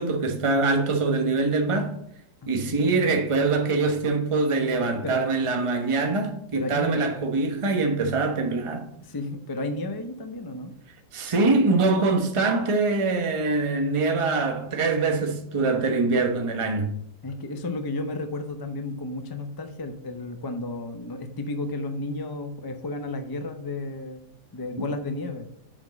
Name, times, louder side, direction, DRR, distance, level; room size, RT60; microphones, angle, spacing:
voice 1, 0.0-1.9 2.5-8.9 11.1-16.9, right 3 dB, 25° right, 0.9 m, -24 dB
voice 2, 2.4-2.9 5.0-5.2 6.5-7.0 9.0-10.7 17.2-24.2 24.5-25.5, left 2 dB, 35° left, 0.3 m, -33 dB
7.2 x 5.2 x 5.1 m
omnidirectional pair, 1.7 m